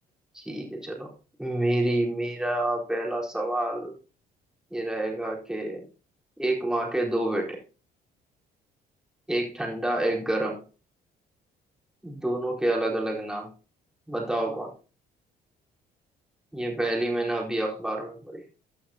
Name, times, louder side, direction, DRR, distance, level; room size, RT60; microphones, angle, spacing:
voice 1, 0.3-1.1 1.4-3.9 4.7-5.9 6.4-7.6 9.3-10.6 12.0-13.5 14.1-14.7 16.5-18.4, right 1 dB, 5° right, -3 dB, 4.3 m, -28 dB
15.5 x 9.1 x 2.9 m, 0.35 s
cardioid pair, 110°, 17 cm